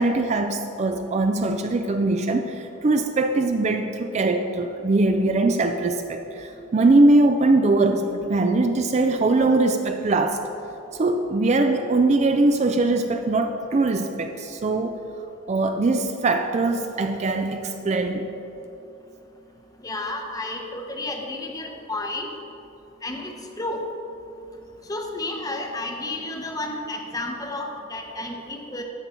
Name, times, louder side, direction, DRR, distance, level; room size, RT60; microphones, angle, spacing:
voice 1, 0.0-10.4 11.0-15.0 15.5-18.3, right 2 dB, 35° right, 6 dB, 0.4 m, -21 dB
voice 2, 19.8-22.3 23.0-23.8 24.9-28.8, left 2 dB, 20° left, 2 dB, 0.8 m, -31 dB
14.0 x 5.3 x 4.4 m, 2.8 s
head